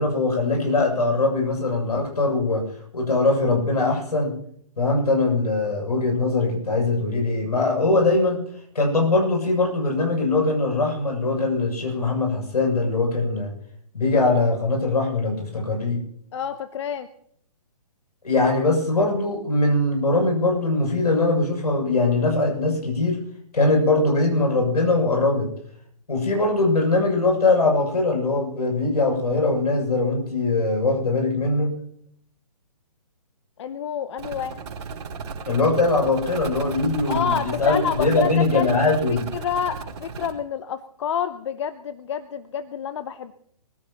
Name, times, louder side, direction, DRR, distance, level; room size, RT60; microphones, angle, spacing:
voice 1, 0.0-2.7 2.9-4.3 4.8-8.4 8.7-13.5 13.9-16.0 18.2-23.2 23.5-25.5 26.1-31.7 35.5-39.3, left 2 dB, 75° left, 1 dB, 7.7 m, -21 dB
voice 2, 16.3-17.1 33.6-34.6 37.1-38.7 39.3-43.3, left 8 dB, 45° left, 13 dB, 0.8 m, -28 dB
sound 1, 34.2-40.3, right 5 dB, 45° right, 4.2 m, -34 dB
23.5 x 16.0 x 3.1 m, 0.65 s
figure-of-eight pair, 140°, 20 cm